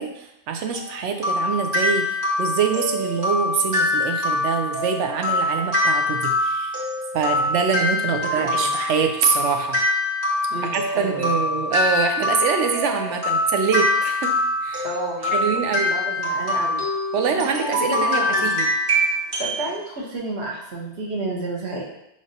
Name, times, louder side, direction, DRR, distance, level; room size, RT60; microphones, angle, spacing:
voice 1, 0.0-6.7 7.1-9.8 10.7-14.3 14.6-14.9 15.3-15.9 17.1-18.7, right 6 dB, 85° right, 4 dB, 0.9 m, -24 dB
sound 1, 0.7-19.6, left 1 dB, 50° right, 1.3 m, -24 dB
voice 2, 8.1-8.7 10.5-11.3 14.8-15.6 15.9-16.8 17.3-18.5 19.4-21.8, right 2 dB, 70° right, -2 dB, 1.2 m, -31 dB
5.0 x 3.2 x 2.7 m, 0.82 s
omnidirectional pair, 1.2 m